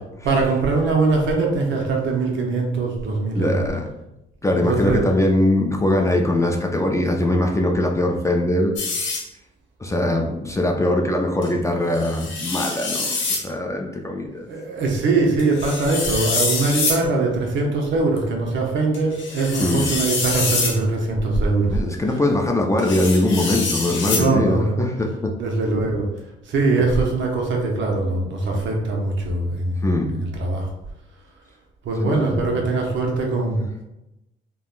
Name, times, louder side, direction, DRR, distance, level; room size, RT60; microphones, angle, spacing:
voice 1, 0.2-3.6 4.5-5.0 14.3-21.8 22.1-22.2 24.0-24.8 25.4-26.1 26.5-30.7 31.8-33.8, right 3 dB, 70° right, 0 dB, 0.7 m, -22 dB
voice 2, 3.3-3.9 4.4-8.7 9.8-14.5 19.6-19.9 21.7-25.3 29.8-30.1 32.0-32.6, left 1 dB, 15° left, 1 dB, 0.4 m, -21 dB
sound 1, 8.8-9.2 11.4-11.5 11.9-13.5 15.4-17.0 18.2-18.3 18.9-20.8 22.8-24.3, left 4 dB, 70° left, 0.8 m, -25 dB
3.4 x 2.2 x 2.4 m, 0.92 s
cardioid pair, 90°, 20 cm